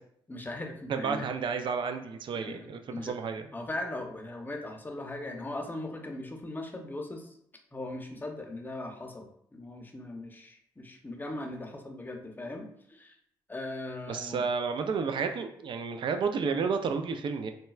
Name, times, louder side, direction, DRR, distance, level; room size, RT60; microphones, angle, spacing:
voice 1, 0.3-1.3 2.4-3.1 3.5-7.4 7.7-13.1 13.5-14.4, left 2 dB, 20° left, 2 dB, 0.7 m, -39 dB
voice 2, 0.9-3.5 14.1-17.5, right 5 dB, 55° right, 7 dB, 0.4 m, -31 dB
3.9 x 2.2 x 2.3 m, 0.69 s
supercardioid pair, 50°, 10 cm